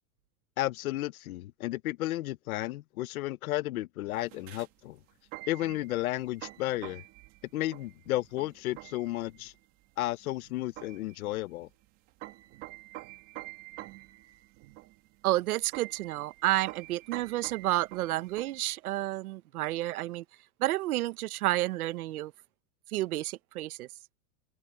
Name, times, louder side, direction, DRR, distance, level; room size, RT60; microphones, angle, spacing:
voice 1, 0.6-5.0 5.5-7.0 7.5-9.5 10.0-11.7, left 16 dB, 75° left, 1.1 m, -33 dB
sound 1, 4.1-18.7, right 19 dB, 30° right, 2.3 m, -48 dB
voice 2, 15.2-20.2 20.6-22.3 22.9-23.9, right 16 dB, 85° right, 1.3 m, -30 dB
supercardioid pair, 180°, 43 cm